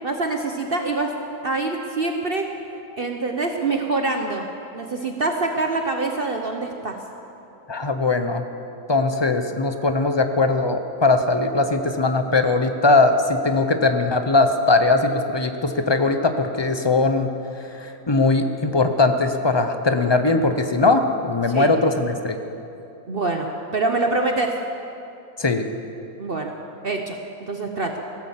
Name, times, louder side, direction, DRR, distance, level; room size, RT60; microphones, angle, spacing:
voice 1, 0.0-1.1 1.4-2.5 3.0-4.5 4.7-7.0 21.5-21.7 23.1-24.5 26.2-26.5 26.8-27.9, right 3 dB, 45° right, 3 dB, 1.0 m, -25 dB
voice 2, 7.7-8.4 8.9-17.3 17.7-22.4 25.4-25.6, left 3 dB, 30° left, 7 dB, 0.5 m, -20 dB
16.0 x 12.0 x 7.4 m, 2.8 s
omnidirectional pair, 1.6 m